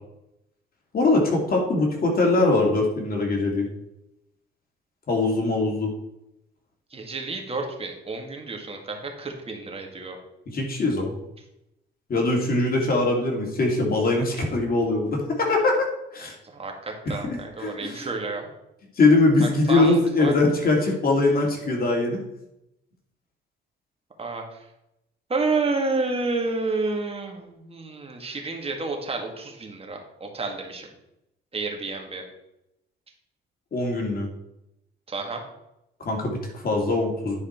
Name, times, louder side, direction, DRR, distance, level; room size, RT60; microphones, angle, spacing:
voice 1, 0.9-3.7 5.1-5.9 10.5-11.2 12.1-15.9 16.1-16.4 17.0-18.1 19.0-22.2 33.7-34.3 36.0-37.4, left 2 dB, 50° left, 0 dB, 2.5 m, -22 dB
voice 2, 6.9-10.2 16.4-18.5 19.4-20.3 24.2-24.6 25.3-30.9 31.5-32.2 35.1-35.4, right 3 dB, 30° right, 2 dB, 2.0 m, -30 dB
10.0 x 4.8 x 4.5 m, 0.86 s
cardioid pair, 90°, 20 cm